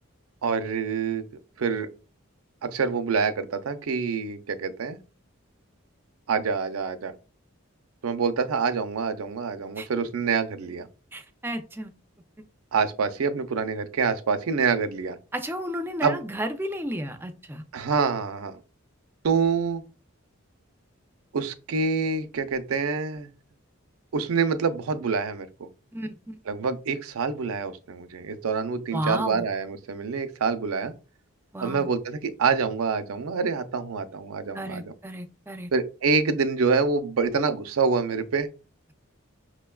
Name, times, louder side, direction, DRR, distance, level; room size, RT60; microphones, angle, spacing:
voice 1, 0.4-1.2 1.6-1.9 2.6-5.0 6.3-7.1 8.0-10.9 12.7-15.2 16.0-16.2 17.7-18.6 19.2-19.8 21.3-23.3 24.1-25.7 26.5-30.9 31.6-34.9 35.7-38.5, right 5 dB, 85° right, 0.5 m, -26 dB
voice 2, 11.1-11.9 15.3-17.6 25.9-26.4 28.9-29.4 31.5-31.9 34.5-35.7, right 1 dB, 10° right, 0.4 m, -32 dB
5.9 x 2.2 x 2.2 m
head